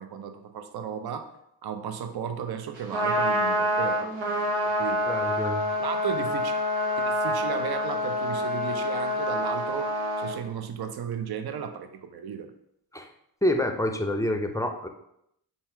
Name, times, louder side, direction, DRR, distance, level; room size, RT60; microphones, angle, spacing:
voice 1, 0.0-1.3 1.6-5.1 5.8-6.6 6.9-12.5, right 7 dB, 55° right, 8 dB, 0.6 m, -35 dB
Trumpet, 2.8-10.4, left 1 dB, 80° right, 1.0 m, -27 dB
voice 2, 5.1-5.6 12.9-13.1 13.4-14.9, left 1 dB, 5° left, 5 dB, 0.5 m, -27 dB
4.2 x 2.3 x 4.3 m, 0.77 s
supercardioid pair, 40°, 46 cm